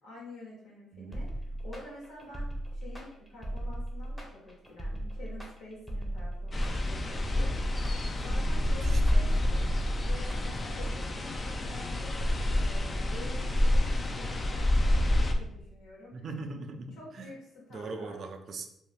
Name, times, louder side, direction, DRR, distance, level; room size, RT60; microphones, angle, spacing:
voice 1, 0.0-16.1 16.9-18.2, left 2 dB, 85° left, -5 dB, 1.4 m, -48 dB
sound 1, 1.1-10.9, right 1 dB, ahead, 0.7 m, -38 dB
sound 2, 6.5-15.3, left 1 dB, 30° left, 0.4 m, -28 dB
voice 2, 8.6-9.0 16.1-17.3 17.7-18.7, right 3 dB, 55° right, 5 dB, 0.4 m, -40 dB
2.6 x 2.5 x 3.5 m, 0.79 s
cardioid pair, 90°, 0 cm